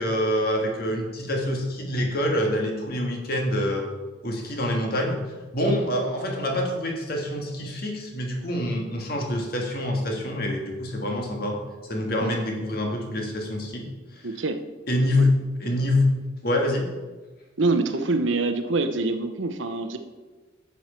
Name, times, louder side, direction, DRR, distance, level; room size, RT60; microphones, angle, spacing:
voice 1, 0.0-3.9 4.2-5.2 5.5-11.6 11.9-13.9 14.9-15.3 15.6-16.1 16.4-16.9, left 1 dB, 50° left, 1 dB, 1.7 m, -26 dB
voice 2, 14.2-14.6 15.2-15.3 17.6-20.0, right 3 dB, 75° right, 8 dB, 0.9 m, -25 dB
10.5 x 7.2 x 4.4 m, 1.2 s
head